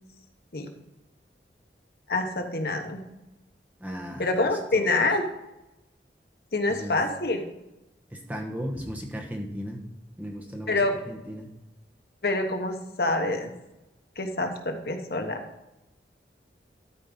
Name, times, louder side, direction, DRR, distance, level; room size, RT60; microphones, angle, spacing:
voice 1, 2.1-3.0 4.2-5.3 6.5-7.4 10.7-11.2 12.2-13.5 14.2-15.4, left 2 dB, 60° left, 4 dB, 1.2 m, -26 dB
voice 2, 3.8-4.9 6.7-7.0 8.1-9.8 10.2-10.8 11.1-11.5, equal, 10° right, 1 dB, 1.2 m, -36 dB
13.0 x 4.8 x 5.4 m, 0.95 s
head